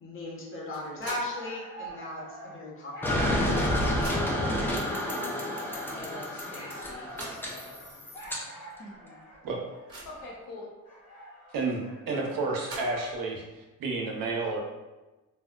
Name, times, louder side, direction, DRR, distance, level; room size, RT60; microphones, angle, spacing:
voice 1, 0.0-3.8 4.5-5.0 8.8-9.2, left 1 dB, 40° left, -4 dB, 0.8 m, -38 dB
sound 1, 0.7-1.5 1.9-2.0 3.0-3.1 3.4-4.5 5.3-5.4 5.8-5.9 6.8-7.5 8.2-8.3 8.7-8.8 9.3-10.3 12.3-13.2, right 2 dB, 15° right, 1.0 m, -44 dB
sound 2, 0.8-13.3, equal, 70° left, 1.3 m, -45 dB
sound 3, 3.0-8.4, left 1 dB, 5° left, 0.3 m, -30 dB
voice 2, 5.1-5.4 5.9-8.1 8.3-8.5 10.0-10.7, left 2 dB, 85° left, -2 dB, 0.9 m, -46 dB
voice 3, 11.5-14.6, right 3 dB, 80° right, 0 dB, 0.7 m, -31 dB
3.4 x 2.1 x 2.3 m, 1.1 s
cardioid pair, 140°, 33 cm